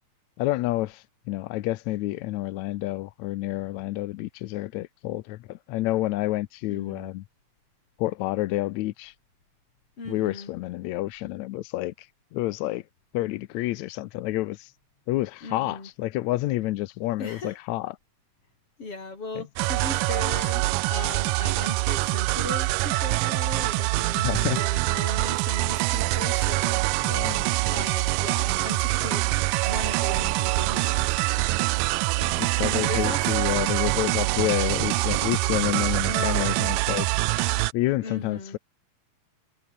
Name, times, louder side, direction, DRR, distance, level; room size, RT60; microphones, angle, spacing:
voice 1, 0.4-7.2 8.0-9.1 10.1-12.8 13.1-14.7 15.1-18.0 19.4-19.5 24.2-24.6 27.0-27.5 32.2-37.3 37.7-38.6, left 17 dB, 75° left, 1.7 m, -29 dB
voice 2, 6.7-7.1 10.0-10.5 15.4-15.9 17.2-17.6 18.8-27.3 27.7-31.5 32.1-32.4 32.9-34.0 36.1-36.6 38.0-38.6, left 3 dB, 40° left, 7.4 m, -38 dB
sound 1, 19.6-37.7, right 22 dB, 85° right, 2.2 m, -25 dB
omnidirectional pair, 3.9 m